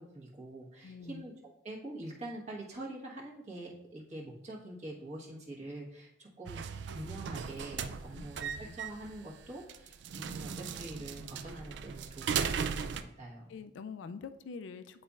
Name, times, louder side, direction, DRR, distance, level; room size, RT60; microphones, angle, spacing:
voice 1, 0.0-13.6, right 1 dB, 35° right, -3 dB, 1.3 m, -45 dB
voice 2, 0.8-1.2 8.1-8.7 13.5-15.0, left 5 dB, 70° left, 12 dB, 0.3 m, -45 dB
sound 1, 6.5-13.0, right 6 dB, 65° right, 0.3 m, -37 dB
10.0 x 4.0 x 2.4 m, 0.85 s
head